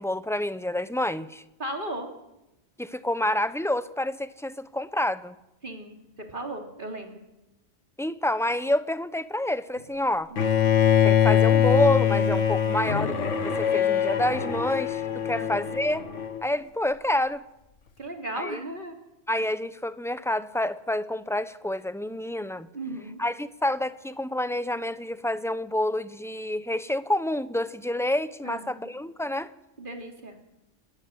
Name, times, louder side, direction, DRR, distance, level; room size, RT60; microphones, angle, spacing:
voice 1, 0.0-1.4 2.8-5.3 8.0-10.3 11.0-16.0 16.4-17.4 18.4-18.6 19.3-22.7 23.2-29.5, left 1 dB, 5° left, 13 dB, 0.6 m, -28 dB
voice 2, 1.6-2.1 5.6-7.2 10.3-10.7 15.3-15.6 18.0-18.9 22.7-23.2 28.4-28.9 29.8-30.4, right 1 dB, 45° right, 2 dB, 3.2 m, -36 dB
Bowed string instrument, 10.4-16.4, left 9 dB, 85° left, 1.7 m, -23 dB
29.5 x 13.5 x 8.0 m, 0.93 s
omnidirectional pair, 1.2 m